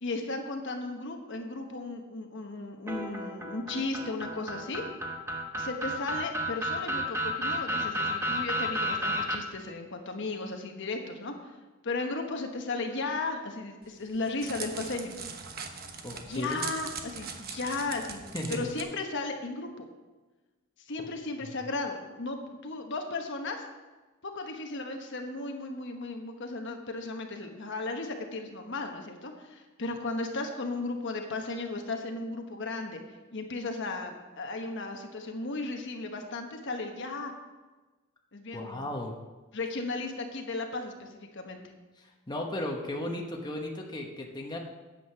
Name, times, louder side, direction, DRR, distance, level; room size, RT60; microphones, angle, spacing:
voice 1, 0.0-4.8 5.6-11.3 11.8-15.1 16.2-18.2 18.5-19.9 20.9-23.6 24.2-33.0 33.3-37.3 38.3-38.9 39.5-41.6, left 3 dB, 60° left, 4 dB, 1.2 m, -35 dB
sound 1, 2.9-9.4, equal, 15° right, 1.0 m, -32 dB
Crackle, 13.8-18.8, right 6 dB, 45° right, 1.0 m, -41 dB
voice 2, 16.0-16.6 18.3-18.7 21.0-21.1 21.4-21.6 38.5-39.1 42.0-44.6, left 1 dB, 20° left, 0 dB, 1.1 m, -36 dB
9.5 x 7.9 x 5.7 m, 1.2 s
head